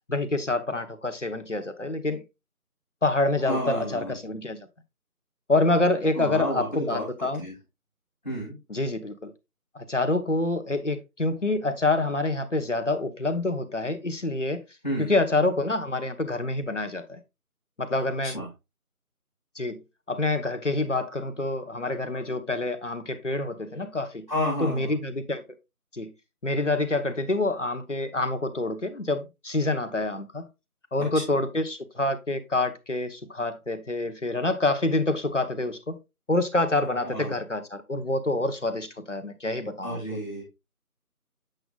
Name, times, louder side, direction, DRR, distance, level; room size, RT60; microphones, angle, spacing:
voice 1, 0.1-2.2 3.0-4.6 5.5-7.4 8.7-9.3 9.7-14.6 15.0-17.2 17.8-18.4 19.5-19.8 20.1-24.3 24.6-25.4 25.9-26.1 26.4-30.5 30.9-36.0 36.3-40.0, left 2 dB, 55° left, 1.2 m, -27 dB
voice 2, 3.5-4.2 6.1-7.5 8.2-8.6 14.8-15.2 18.3-18.5 24.3-24.9 31.1-31.2 36.8-37.3 39.8-40.4, equal, 30° left, 2.2 m, -31 dB
7.9 x 5.7 x 2.4 m
figure-of-eight pair, 175°, 45 cm